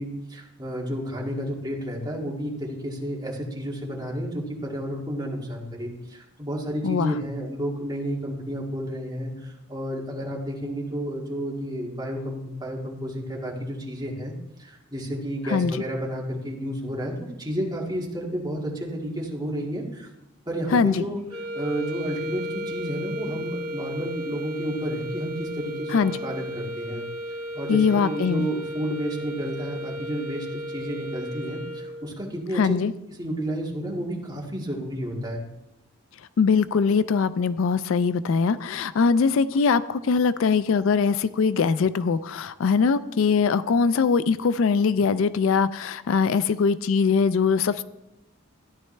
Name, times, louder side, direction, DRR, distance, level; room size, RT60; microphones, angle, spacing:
voice 1, 0.0-14.3 14.6-20.1 20.5-21.2 21.5-27.0 27.3-32.8 33.2-35.4, equal, 20° right, -3 dB, 2.0 m, -31 dB
voice 2, 6.8-7.1 15.5-15.8 20.7-21.0 25.9-26.2 27.7-28.5 32.5-32.9 36.4-47.8, left 5 dB, 65° left, 15 dB, 0.3 m, -22 dB
sound 1, 21.3-32.2, equal, 70° right, 1.7 m, -34 dB
14.0 x 10.5 x 3.3 m, 0.92 s
head